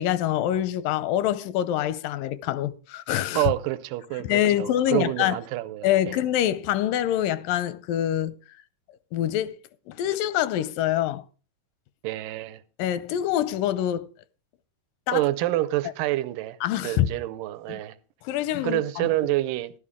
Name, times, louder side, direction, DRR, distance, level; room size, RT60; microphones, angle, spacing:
voice 1, 0.0-3.5 4.2-5.4 5.8-8.3 9.1-9.6 9.9-11.2 12.8-14.1 15.1-15.2 16.6-17.1 17.7-17.8 18.2-19.1, left 12 dB, 85° left, 2.3 m, -25 dB
voice 2, 3.4-6.2 12.0-12.6 15.1-16.6 16.8-18.0 18.6-19.7, right 16 dB, 85° right, 2.3 m, -27 dB
13.0 x 11.0 x 3.6 m
omnidirectional pair, 3.8 m